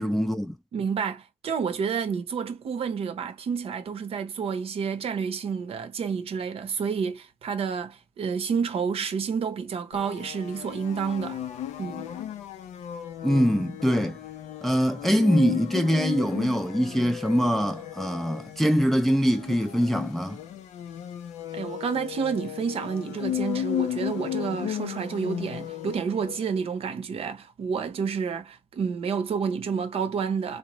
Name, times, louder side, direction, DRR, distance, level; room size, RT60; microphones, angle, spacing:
voice 1, 0.0-0.6 13.2-14.2 14.6-20.4, equal, ahead, 0.4 m, -23 dB
voice 2, 0.7-11.4 11.8-12.1 21.5-30.6, right 6 dB, 55° right, 0.7 m, -29 dB
sound 1, 9.9-26.5, left 10 dB, 80° left, 0.5 m, -35 dB
2.9 x 2.1 x 2.9 m
cardioid pair, 85°, 12 cm